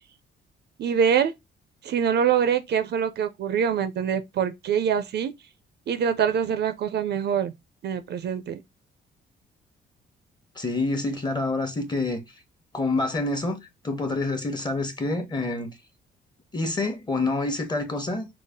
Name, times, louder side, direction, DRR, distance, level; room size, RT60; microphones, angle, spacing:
voice 1, 0.8-1.3 1.8-5.3 5.9-7.5 7.8-8.6, right 8 dB, 60° right, 0.5 m, -24 dB
voice 2, 10.6-12.2 12.7-13.6 13.8-15.7 16.5-18.3, left 2 dB, 20° left, 1.0 m, -27 dB
4.0 x 2.0 x 3.6 m
cardioid pair, 90°, 20 cm